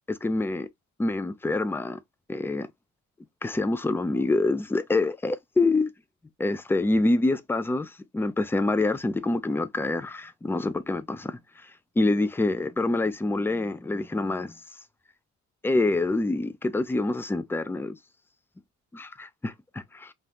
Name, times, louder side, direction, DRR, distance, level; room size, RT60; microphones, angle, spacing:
voice 1, 0.1-0.7 1.0-2.0 2.3-2.7 3.4-5.9 6.4-11.4 12.0-14.6 15.6-18.0 19.4-20.1, left 2 dB, 10° left, 0.4 m, -26 dB
2.7 x 2.3 x 3.3 m
cardioid pair, 90°, 30 cm